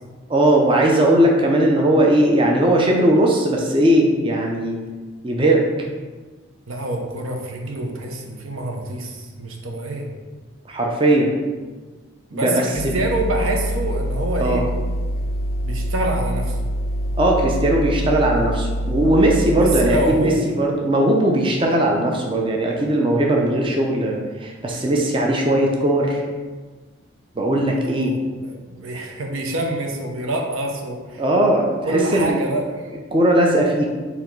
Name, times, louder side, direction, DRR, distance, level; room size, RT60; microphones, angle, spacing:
voice 1, 0.3-4.8 5.2-5.7 10.7-11.3 12.3-12.9 14.4-14.6 17.2-26.2 27.4-28.1 31.2-32.4 33.1-33.9, right 1 dB, 25° right, 0 dB, 0.4 m, -18 dB
voice 2, 6.7-10.1 12.3-14.7 15.6-16.6 19.5-20.4 27.8-31.2 31.8-32.9, right 2 dB, 90° right, 1 dB, 0.7 m, -26 dB
sound 1, 12.8-20.0, equal, 85° left, 0.4 m, -25 dB
4.1 x 2.9 x 4.4 m, 1.4 s
head